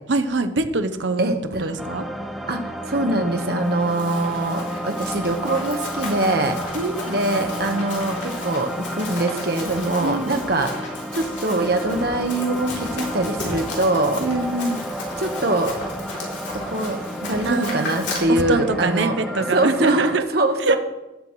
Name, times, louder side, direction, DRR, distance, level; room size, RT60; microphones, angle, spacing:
voice 1, 0.1-1.3 1.6-2.0 6.7-7.1 10.0-10.4 14.2-14.9 17.4-18.0 18.3-20.2 20.7-20.8, right 3 dB, 85° right, 10 dB, 0.9 m, -23 dB
voice 2, 1.2-1.7 2.5-6.7 7.1-14.2 15.2-15.8 16.5-19.2 19.5-20.8, right 2 dB, 55° right, 5 dB, 1.3 m, -23 dB
sound 1, 1.8-20.2, equal, ahead, 0.7 m, -31 dB
Run, 3.6-18.2, left 2 dB, 85° left, 3.2 m, -35 dB
18.5 x 7.7 x 3.2 m, 1.0 s
head